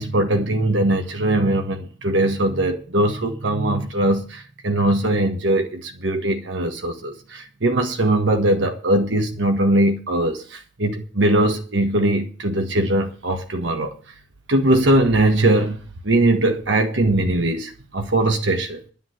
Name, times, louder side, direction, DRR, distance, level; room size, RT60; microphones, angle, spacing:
voice 1, 0.0-14.0 14.5-15.8 16.0-18.8, right 1 dB, 70° right, 1.6 m, -20 dB
10.5 x 7.5 x 7.9 m
head